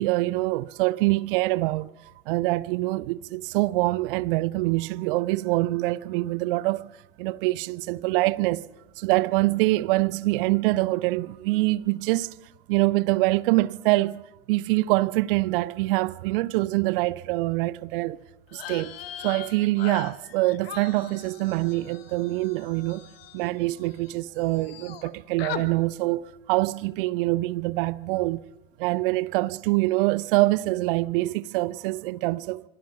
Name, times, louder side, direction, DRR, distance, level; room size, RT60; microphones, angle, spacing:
voice 1, 0.0-6.9 7.2-8.6 9.0-12.3 12.7-14.2 14.5-18.2 18.5-19.0 19.2-23.1 23.3-28.4 28.8-32.6, right 20 dB, 55° right, 0.7 m, -25 dB
sound 1, 18.5-24.1 24.4-25.1 25.4-25.7, left 11 dB, 65° left, 1.7 m, -40 dB
26.0 x 24.5 x 5.8 m
figure-of-eight pair, 70°, 31 cm